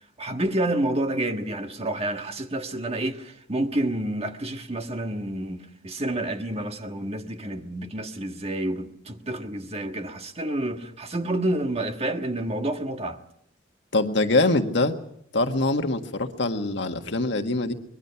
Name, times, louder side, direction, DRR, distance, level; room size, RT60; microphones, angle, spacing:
voice 1, 0.2-13.2, right 1 dB, 35° right, 1.5 m, -29 dB
voice 2, 13.9-14.9 15.3-17.7, left 2 dB, 70° left, 1.7 m, -23 dB
24.5 x 21.5 x 5.8 m
head